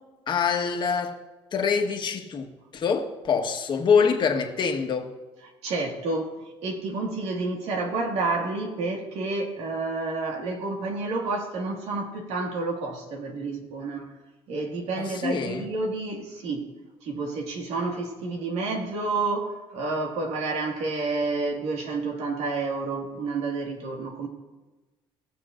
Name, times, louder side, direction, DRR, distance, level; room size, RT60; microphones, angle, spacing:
voice 1, 0.3-1.2 1.5-5.1 15.0-15.7, left 6 dB, 45° left, 3 dB, 1.3 m, -25 dB
voice 2, 5.6-14.1 14.5-16.7 17.0-24.3, right 3 dB, 75° right, 1 dB, 1.9 m, -29 dB
19.0 x 6.9 x 2.5 m, 1.2 s
cardioid pair, 115°, 11 cm